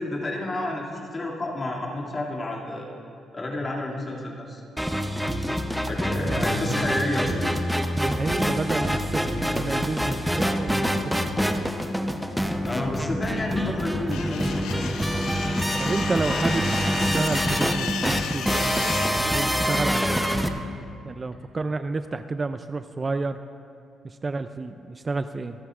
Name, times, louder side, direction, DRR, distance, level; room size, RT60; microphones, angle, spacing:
voice 1, 0.0-2.9 3.3-4.6 5.8-7.3 12.2-12.4 12.7-15.1 16.2-16.4, left 2 dB, 30° left, -3 dB, 2.4 m, -30 dB
sound 1, 4.8-20.5, equal, ahead, 0.7 m, -26 dB
voice 2, 6.1-6.5 6.9-7.5 8.0-10.9 15.8-16.7 17.1-20.3 21.0-23.4 24.2-25.5, right 3 dB, 30° right, 10 dB, 0.3 m, -30 dB
sound 2, 14.1-19.1, left 8 dB, 90° left, 0.6 m, -35 dB
26.0 x 8.8 x 2.5 m, 2.5 s
cardioid pair, 90°, 0 cm